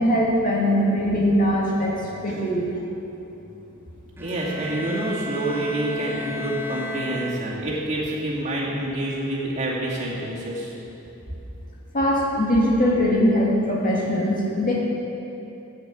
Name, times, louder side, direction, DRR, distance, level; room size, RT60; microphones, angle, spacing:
voice 1, 0.0-2.7 11.9-14.8, equal, 40° left, -3 dB, 2.0 m, -21 dB
Bowed string instrument, 4.2-7.8, left 1 dB, 10° right, 0.8 m, -34 dB
voice 2, 4.2-10.7, right 1 dB, 35° right, -6 dB, 2.4 m, -27 dB
9.8 x 8.7 x 7.7 m, 2.9 s
head